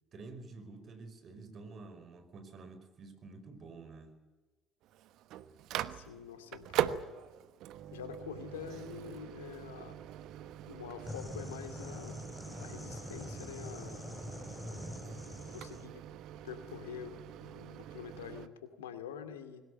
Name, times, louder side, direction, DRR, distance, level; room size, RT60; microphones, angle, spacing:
voice 1, 0.0-4.2 14.6-15.1, right 3 dB, 50° right, 9 dB, 5.1 m, -50 dB
Microwave oven, 4.8-18.5, right 11 dB, 65° right, 1.1 m, -42 dB
voice 2, 5.9-7.1 7.9-10.0 10.7-12.2 12.6-14.0 15.5-16.0 16.4-19.6, left 8 dB, 85° left, 9 dB, 2.4 m, -46 dB
sound 1, 11.1-15.9, left 2 dB, 15° left, 3.2 m, -44 dB
22.0 x 19.5 x 9.2 m, 1.2 s
hypercardioid pair, 55°, 0 cm